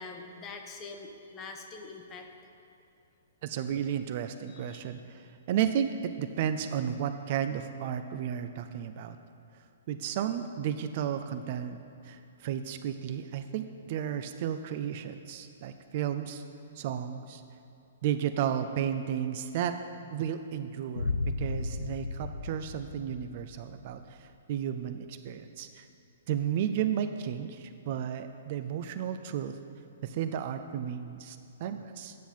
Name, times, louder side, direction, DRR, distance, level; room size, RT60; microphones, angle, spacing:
voice 1, 0.0-2.3 4.5-4.9, left 3 dB, 20° left, 4 dB, 0.9 m, -44 dB
voice 2, 3.4-9.2 9.9-16.4 16.8-17.4 18.0-19.7 20.1-21.1 21.4-25.9 26.3-29.6 30.0-32.2, right 9 dB, 40° right, 9 dB, 0.4 m, -33 dB
Boom, 21.0-23.9, left 3 dB, 70° left, 0.5 m, -34 dB
9.3 x 7.1 x 5.6 m, 2.7 s
figure-of-eight pair, 115°, 0 cm